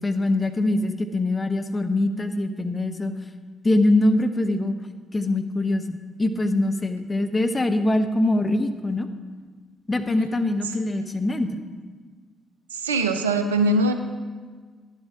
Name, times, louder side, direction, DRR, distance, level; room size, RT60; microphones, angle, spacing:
voice 1, 0.0-3.1 3.6-4.8 5.1-9.1 9.9-11.6, left 2 dB, 25° left, 8 dB, 0.8 m, -23 dB
voice 2, 12.7-13.9, right 2 dB, 85° right, 7 dB, 0.5 m, -21 dB
10.5 x 7.2 x 5.1 m, 1.5 s
figure-of-eight pair, 40°, 0 cm